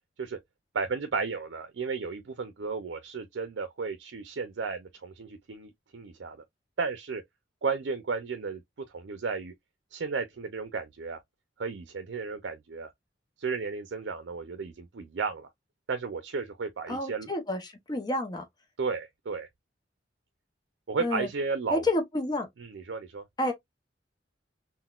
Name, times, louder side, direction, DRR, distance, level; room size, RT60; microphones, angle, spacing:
voice 1, 0.7-6.4 6.8-7.2 7.6-8.6 8.9-9.5 9.9-11.2 11.6-12.9 13.4-15.5 15.9-17.3 18.8-19.5 20.9-21.9 22.6-23.2, right 4 dB, 75° right, 0.5 m, -33 dB
voice 2, 16.9-18.4 21.0-21.3 21.7-22.5 23.4-23.5, left 1 dB, 25° left, 0.6 m, -29 dB
3.8 x 2.2 x 2.3 m
head